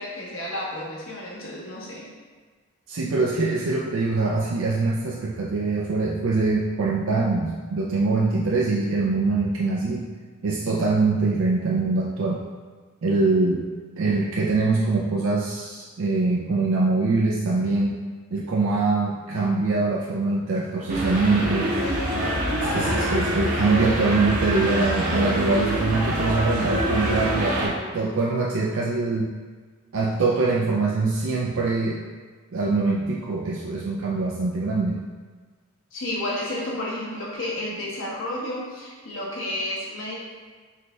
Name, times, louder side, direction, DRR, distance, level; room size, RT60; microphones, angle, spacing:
voice 1, 0.0-2.1 35.9-40.1, left 1 dB, 65° left, -5 dB, 1.1 m, -31 dB
voice 2, 2.9-10.1 10.4-12.4 13.0-13.7 14.0-18.0 18.3-21.7 22.6-29.3 29.9-32.0 32.5-35.0, right 3 dB, 65° right, -3 dB, 0.4 m, -23 dB
sound 1, 20.9-27.7, right 1 dB, 40° right, 0.8 m, -25 dB
4.9 x 3.9 x 2.2 m, 1.5 s
head